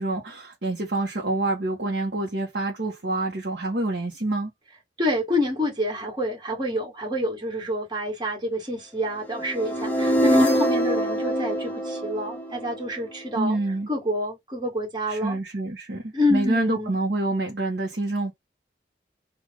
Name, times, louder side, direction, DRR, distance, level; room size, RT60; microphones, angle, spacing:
voice 1, 0.0-4.5 13.3-13.9 15.1-18.3, right 2 dB, 70° right, 1.0 m, -27 dB
voice 2, 5.0-13.6 13.9-15.4 16.1-17.0, left 1 dB, 25° right, 1.7 m, -27 dB
sound 1, 9.3-13.3, equal, 10° left, 0.8 m, -24 dB
3.2 x 2.5 x 3.6 m
head